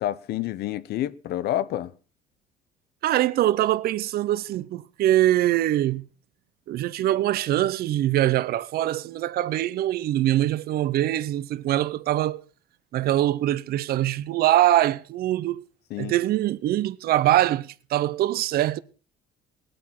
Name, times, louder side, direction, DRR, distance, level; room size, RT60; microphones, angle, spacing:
voice 1, 0.0-1.9 15.9-16.1, left 13 dB, 70° left, 0.9 m, -28 dB
voice 2, 3.0-6.1 6.7-12.4 12.9-15.6 16.0-18.8, right 13 dB, 65° right, 0.7 m, -23 dB
19.0 x 8.9 x 5.7 m
cardioid pair, 110°, 17 cm